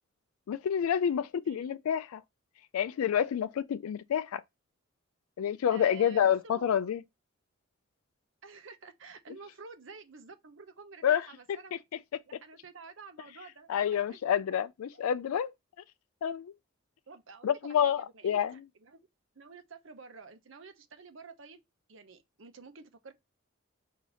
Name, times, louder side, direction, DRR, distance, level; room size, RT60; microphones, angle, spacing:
voice 1, 0.5-2.2 2.7-4.4 5.4-7.0 11.0-11.3 13.7-15.5 16.2-16.5 17.4-18.6, left 9 dB, 90° left, 0.3 m, -28 dB
voice 2, 5.7-6.9 8.4-11.8 12.3-14.2 14.9-15.0 17.1-19.0 19.4-21.6 21.9-23.1, right 5 dB, 65° right, 0.8 m, -50 dB
4.8 x 2.8 x 3.9 m
head